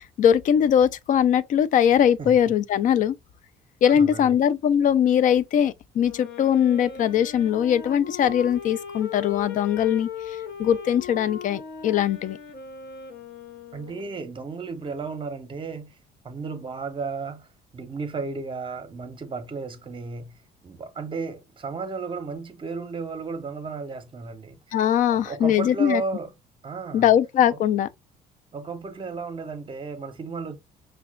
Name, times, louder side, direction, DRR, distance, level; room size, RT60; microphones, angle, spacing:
voice 1, 0.0-3.2 3.8-12.4 24.7-26.0 26.9-27.9, left 9 dB, 50° left, 0.4 m, -21 dB
voice 2, 3.9-4.4 13.7-16.0 16.2-17.5 17.7-20.4 20.6-24.6 25.1-26.3 26.6-27.1 27.5-27.6 28.5-30.6, right 4 dB, 30° right, 0.8 m, -34 dB
Wind instrument woodwind instrument, 5.9-14.3, left 6 dB, 80° left, 1.2 m, -39 dB
5.8 x 2.3 x 2.3 m
cardioid pair, 110°, 17 cm